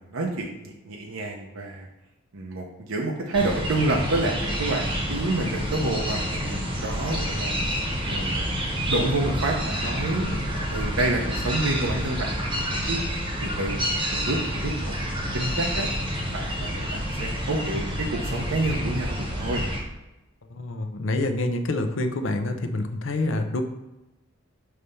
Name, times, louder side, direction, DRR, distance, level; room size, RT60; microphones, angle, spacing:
voice 1, 0.0-1.9 2.3-7.6 8.1-8.5 8.9-13.0 13.4-13.8 14.1-15.9 16.3-19.6, right 2 dB, 85° right, 0 dB, 0.7 m, -28 dB
sound 1, 3.3-19.8, equal, 25° right, 1.0 m, -28 dB
voice 2, 20.5-23.6, left 2 dB, 70° left, 6 dB, 0.6 m, -27 dB
5.6 x 3.3 x 5.4 m, 0.98 s
head